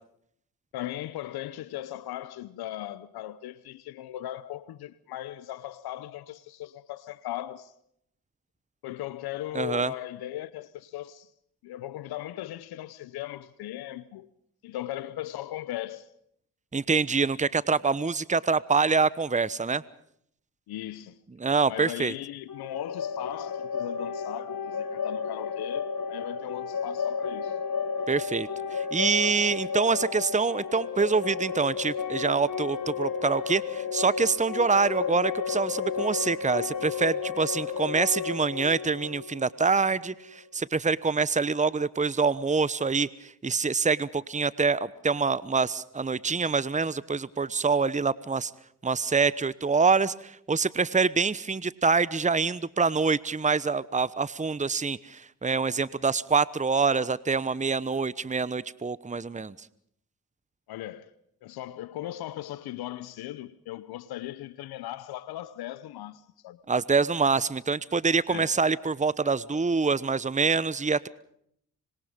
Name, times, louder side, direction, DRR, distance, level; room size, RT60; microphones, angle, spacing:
voice 1, 0.7-7.7 8.8-11.3 11.6-14.3 14.6-16.1 20.7-21.2 21.7-27.6 60.7-61.1 61.4-66.6 68.3-68.6, left 14 dB, 80° left, 0.9 m, -38 dB
voice 2, 9.5-9.9 16.7-19.8 21.4-22.1 28.1-48.5 48.8-59.5 66.7-71.1, right 4 dB, 20° right, 1.0 m, -26 dB
sound 1, 22.5-40.3, left 6 dB, 60° left, 4.8 m, -32 dB
26.0 x 21.5 x 5.3 m
hypercardioid pair, 40°, 37 cm